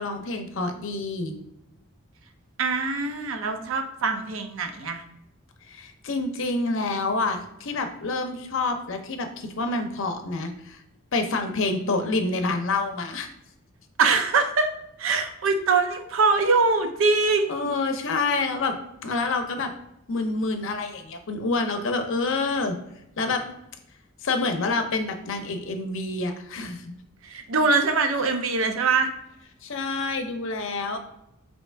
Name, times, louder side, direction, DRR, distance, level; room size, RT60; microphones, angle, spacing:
voice 1, 0.0-1.3 5.7-10.8 11.1-13.3 17.5-18.7 19.0-19.7 20.1-22.8 23.2-23.5 24.2-26.9 29.6-31.0, left 3 dB, 65° left, 6 dB, 0.6 m, -27 dB
voice 2, 2.6-5.0 14.0-17.7 27.2-29.1, right 4 dB, 70° right, 7 dB, 0.5 m, -23 dB
3.3 x 2.8 x 4.4 m, 0.83 s
head